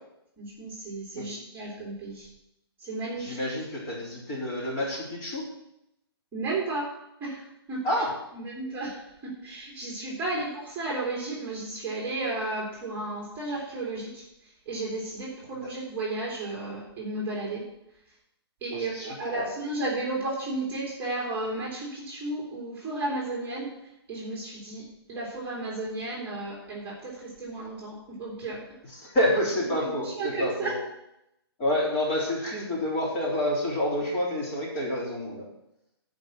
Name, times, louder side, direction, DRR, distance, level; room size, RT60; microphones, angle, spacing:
voice 1, 0.4-2.3 2.8-3.5 6.3-6.8 7.2-7.8 8.3-17.6 18.6-23.7 24.1-28.6 29.8-30.7, right 2 dB, 15° right, -4 dB, 2.9 m, -33 dB
voice 2, 3.2-5.4 7.8-8.1 18.7-19.1 19.3-19.5 28.9-30.7 31.6-35.4, left 1 dB, 25° left, -4 dB, 3.7 m, -28 dB
10.5 x 5.3 x 8.3 m, 0.83 s
hypercardioid pair, 155°, 14 cm